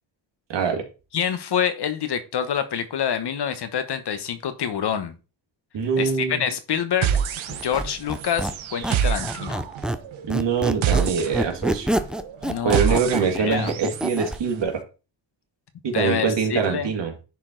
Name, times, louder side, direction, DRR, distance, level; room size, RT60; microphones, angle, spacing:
voice 1, 0.5-0.9 5.7-6.4 10.2-11.9 12.6-14.8 15.8-17.1, right 6 dB, 65° right, 3 dB, 2.2 m, -24 dB
voice 2, 1.1-5.1 6.0-7.1 7.5-9.6 12.4-13.0 13.4-13.7 15.9-16.9, left 8 dB, 60° left, 11 dB, 1.1 m, -26 dB
sound 1, 7.0-14.2, right 8 dB, 85° right, 1.0 m, -27 dB
Squeak, 7.5-10.0 10.3-14.4, right 1 dB, ahead, 0.5 m, -27 dB
10.5 x 4.5 x 3.8 m, 0.32 s
cardioid pair, 115°, 46 cm